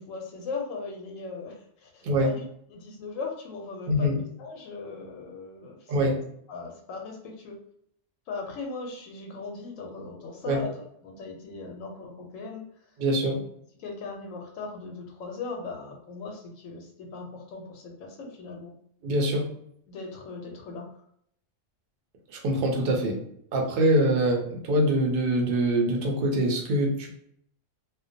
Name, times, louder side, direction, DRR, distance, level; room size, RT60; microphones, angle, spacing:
voice 1, 0.0-2.4 2.7-6.2 6.5-7.6 8.3-12.7 13.2-13.4 13.8-18.7 19.9-21.0, left 4 dB, 85° left, 1 dB, 1.0 m, -38 dB
voice 2, 3.9-4.2 5.9-6.2 10.5-10.6 13.0-13.4 19.0-19.5 22.4-23.2 23.5-27.2, right 1 dB, 55° right, 1 dB, 0.7 m, -24 dB
2.3 x 2.1 x 2.6 m, 0.68 s
omnidirectional pair, 1.3 m